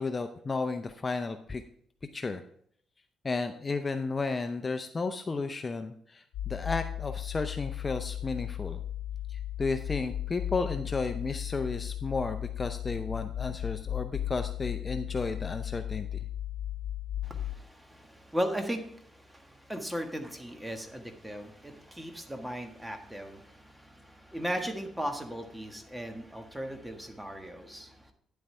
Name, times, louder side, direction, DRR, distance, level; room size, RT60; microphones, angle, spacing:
voice 1, 0.0-1.6 2.1-2.4 3.2-8.8 9.3-16.2, left 3 dB, 30° left, 8 dB, 0.6 m, -33 dB
sound 1, 6.3-17.6, left 11 dB, 85° left, 0.5 m, -36 dB
voice 2, 17.2-28.1, equal, 10° right, 6 dB, 1.5 m, -37 dB
10.0 x 7.9 x 3.3 m, 0.65 s
cardioid pair, 90°, 0 cm